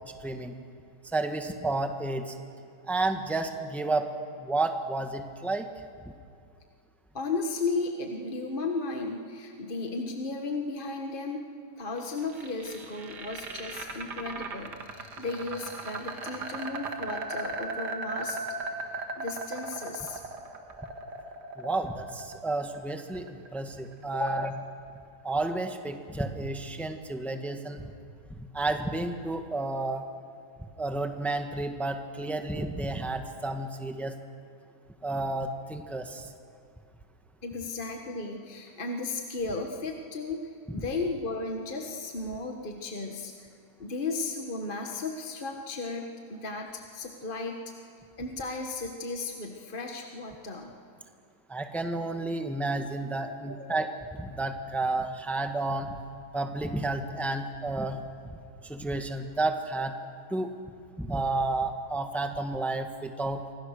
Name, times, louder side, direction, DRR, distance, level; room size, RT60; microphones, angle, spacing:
voice 1, 0.2-0.5 1.1-2.3 2.9-4.1 4.4-5.7 21.6-24.5 25.2-27.8 28.4-30.0 30.8-34.1 35.0-36.3 51.5-55.9 56.3-58.0 58.6-59.9 60.3-60.5 61.0-63.4, right 2 dB, ahead, 5 dB, 1.2 m, -31 dB
voice 2, 7.1-11.4 11.8-18.4 18.7-20.2 24.1-24.5 37.4-43.5 43.8-47.7 48.2-50.8 53.5-53.6, left 3 dB, 30° left, 2 dB, 1.6 m, -35 dB
sound 1, 12.0-24.0, right 3 dB, 70° right, 2.3 m, -38 dB
28.5 x 25.5 x 6.6 m, 2.4 s
omnidirectional pair, 1.9 m